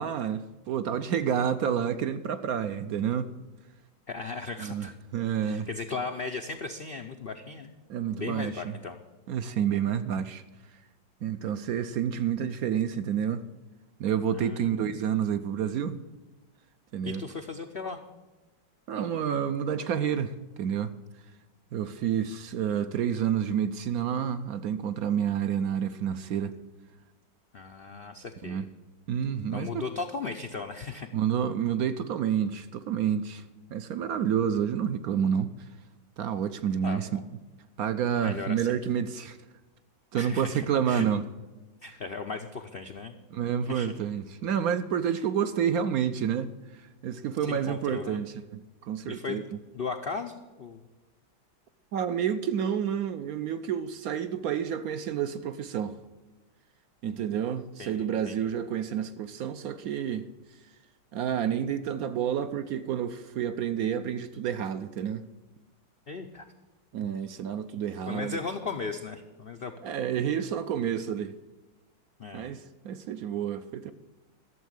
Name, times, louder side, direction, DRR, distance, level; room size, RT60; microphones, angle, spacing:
voice 1, 0.0-3.3 4.6-4.9 5.1-5.7 7.9-8.6 9.3-10.4 11.2-13.4 14.0-16.0 16.9-17.2 18.9-20.9 21.7-26.6 28.4-28.6 29.1-29.8 31.1-33.4 33.7-35.5 36.2-37.2 37.8-39.4 40.1-41.2 43.3-49.4 51.9-56.0 57.0-60.3 61.1-65.2 66.9-68.4 69.8-71.3 72.3-73.9, right 8 dB, 70° right, 0.9 m, -29 dB
voice 2, 4.1-4.9 5.4-7.8 8.1-9.0 14.3-14.9 17.0-18.0 27.5-28.7 29.5-31.1 36.8-37.2 38.2-38.7 40.1-41.0 41.8-43.2 43.7-43.9 47.5-48.2 49.1-49.4 49.7-50.8 57.0-57.3 57.8-58.5 66.1-66.5 68.1-69.7 72.2-72.5, left 4 dB, 80° left, 0.5 m, -37 dB
12.5 x 7.3 x 9.3 m
omnidirectional pair, 2.0 m